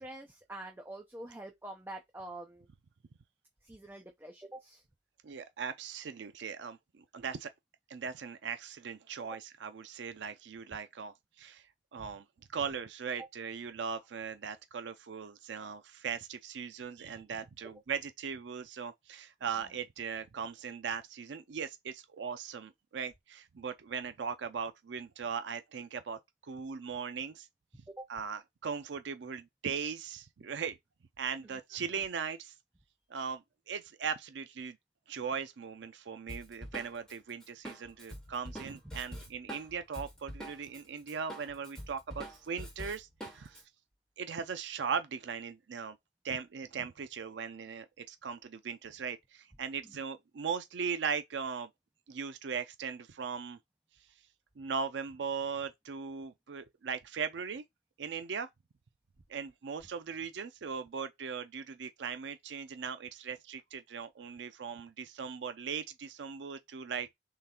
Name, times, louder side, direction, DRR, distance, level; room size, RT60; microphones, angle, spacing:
voice 1, 0.0-2.7 3.6-4.8 9.3-9.4 12.0-12.1 27.9-28.1 31.4-31.6 49.8-50.0, right 1 dB, 10° right, 0.5 m, -46 dB
voice 2, 5.2-7.5 7.9-11.7 11.9-12.2 12.5-27.5 28.1-30.7 31.2-32.5 33.1-34.8 35.1-43.6 44.2-46.0 46.2-51.7 52.1-53.6 54.6-57.6 58.0-58.5 59.3-67.1, right 6 dB, 75° right, 0.5 m, -39 dB
Drum kit, 36.3-40.8 41.1-43.6, equal, 5° left, 2.2 m, -45 dB
3.8 x 3.3 x 4.3 m
head